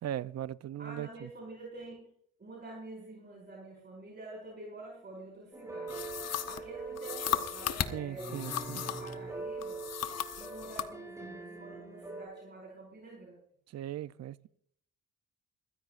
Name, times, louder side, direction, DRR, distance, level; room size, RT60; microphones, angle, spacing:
voice 1, 0.0-1.3 7.9-8.9 13.7-14.5, right 11 dB, 60° right, 0.6 m, -38 dB
voice 2, 0.8-2.1 2.4-6.1 6.5-8.5 8.8-9.9 10.4-13.4, right 2 dB, 35° right, 5.3 m, -47 dB
sound 1, 5.5-12.2, right 3 dB, 10° right, 7.4 m, -43 dB
sound 2, 5.9-9.2 9.6-10.9, left 10 dB, 55° left, 1.1 m, -36 dB
21.5 x 15.0 x 2.6 m
cardioid pair, 90°, 30 cm